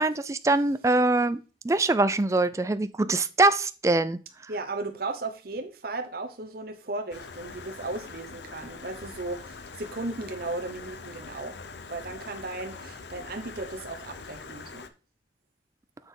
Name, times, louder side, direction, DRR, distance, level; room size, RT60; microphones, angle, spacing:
voice 1, 0.0-4.2, right 2 dB, 15° right, 0.3 m, -23 dB
voice 2, 4.5-11.6 11.9-14.9, right 2 dB, 55° right, 0.8 m, -36 dB
Stream, 7.1-14.9, left 4 dB, 65° left, 0.7 m, -43 dB
7.2 x 5.9 x 3.7 m
head